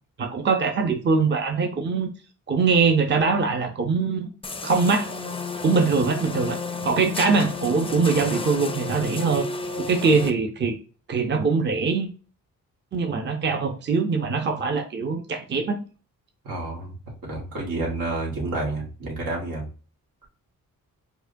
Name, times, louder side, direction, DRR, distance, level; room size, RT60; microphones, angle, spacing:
voice 1, 0.2-2.1 2.5-4.3 4.6-5.1 5.6-9.5 9.9-10.8 11.1-12.1 12.9-15.8, right 4 dB, 35° right, 4 dB, 0.6 m, -22 dB
sound 1, 4.4-10.3, left 4 dB, 15° left, 0.4 m, -32 dB
voice 2, 16.4-19.7, right 2 dB, 80° right, -2 dB, 1.5 m, -30 dB
4.7 x 2.2 x 2.6 m, 0.36 s
cardioid pair, 70°, 33 cm